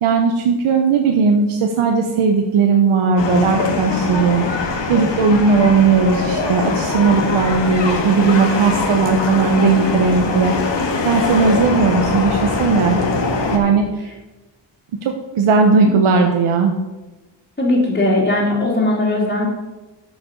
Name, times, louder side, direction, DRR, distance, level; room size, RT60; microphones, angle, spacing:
voice 1, 0.0-4.5 4.9-10.5 11.0-13.0 13.5-14.1 15.0-16.7, right 5 dB, 80° right, 4 dB, 1.0 m, -16 dB
sound 1, 3.2-13.6, left 3 dB, 60° left, 1.8 m, -22 dB
voice 2, 17.6-19.5, left 1 dB, 20° left, -5 dB, 3.2 m, -18 dB
8.7 x 6.3 x 6.5 m, 1.1 s
cardioid pair, 70°, 48 cm